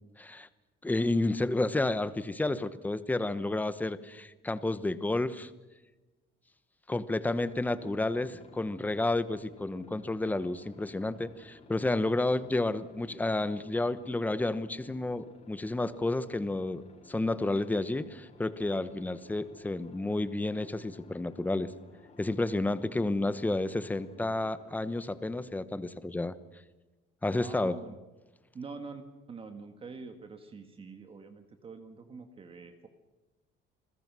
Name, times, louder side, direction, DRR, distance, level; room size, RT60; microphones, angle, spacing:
voice 1, 0.2-0.5 0.8-5.5 6.9-16.8 17.1-21.7 22.2-26.3 27.2-27.7, left 2 dB, 10° left, 13 dB, 1.0 m, -31 dB
Aircraft, 7.2-25.5, left 3 dB, 35° left, 5.0 m, -55 dB
voice 2, 27.3-28.0 28.5-29.0 29.3-32.9, right 4 dB, 25° right, 6 dB, 1.8 m, -45 dB
28.5 x 21.0 x 6.2 m, 1.1 s
cardioid pair, 165°, 20 cm